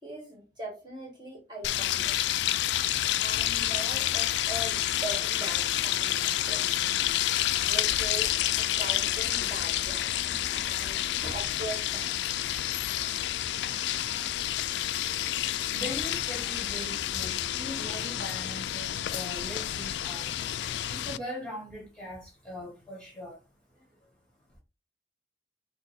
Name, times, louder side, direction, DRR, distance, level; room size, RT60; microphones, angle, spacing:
voice 1, 0.0-2.2 3.2-6.7 7.6-12.2 13.0-13.1, right 1 dB, 25° right, 1.9 m, -41 dB
sound 1, 1.6-21.2, left 13 dB, 80° left, 0.3 m, -29 dB
voice 2, 15.7-20.3 20.9-23.4 23.7-23.9, equal, 5° left, 1.9 m, -40 dB
6.2 x 2.2 x 3.6 m
head